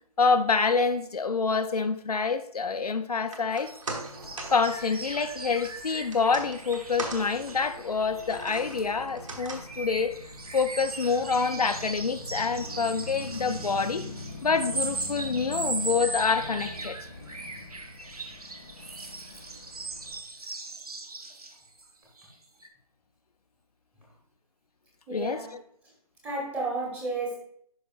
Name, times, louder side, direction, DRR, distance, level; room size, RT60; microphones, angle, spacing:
voice 1, 0.2-3.7 4.5-10.1 10.5-14.1 14.4-17.0 25.1-25.6, left 5 dB, 75° left, 0.6 m, -27 dB
sound 1, 3.1-15.5 15.9-16.0, right 2 dB, 55° right, 1.3 m, -43 dB
sound 2, 3.5-9.0 9.3-21.9 22.2-22.3 22.6-22.7, right 3 dB, 70° right, 1.2 m, -39 dB
sound 3, 4.2-20.2, left 2 dB, 10° left, 0.5 m, -44 dB
voice 2, 25.1-25.5 26.2-27.4, right 3 dB, 5° right, 1.1 m, -32 dB
11.0 x 5.0 x 2.5 m
figure-of-eight pair, 155°, 20 cm